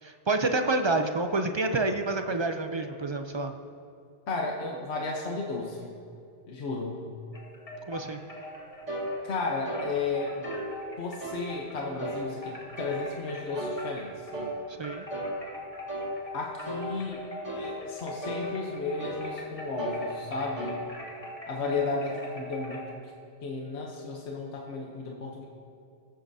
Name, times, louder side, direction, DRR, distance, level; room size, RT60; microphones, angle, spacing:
voice 1, 0.0-3.5 7.9-8.2 14.8-15.1 21.6-21.7, right 2 dB, 50° right, 6 dB, 0.3 m, -28 dB
voice 2, 4.3-5.9 6.5-7.0 9.2-10.5 11.0-14.3 16.3-20.8 21.5-22.8 23.4-25.5, left 3 dB, 70° left, -1 dB, 1.3 m, -33 dB
sound 1, 7.3-14.5 14.8-22.9, left 1 dB, 30° left, 1.7 m, -42 dB
sound 2, 8.9-9.1 9.6-9.9 10.4-10.7 11.2-11.4 12.0-12.2 12.8-13.0 13.5-13.8 14.3-14.6 15.1-15.3 15.9-16.1 16.6-16.9 17.4-17.7 18.2-18.5 19.0-19.3 19.8-20.0 20.6-20.8, right 1 dB, 90° right, 2.2 m, -35 dB
20.5 x 8.5 x 2.7 m, 2.5 s
omnidirectional pair, 1.2 m